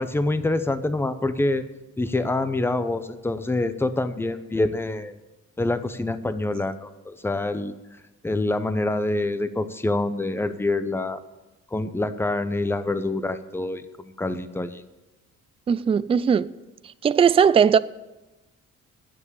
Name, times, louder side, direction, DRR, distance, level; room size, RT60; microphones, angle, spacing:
voice 1, 0.0-1.6 2.0-5.2 5.6-7.7 8.2-11.2 11.7-14.8, left 2 dB, 10° left, 0.7 m, -26 dB
voice 2, 15.7-16.5 17.0-17.8, right 7 dB, 20° right, 0.3 m, -18 dB
9.6 x 7.5 x 8.2 m
cardioid pair, 90°, 30 cm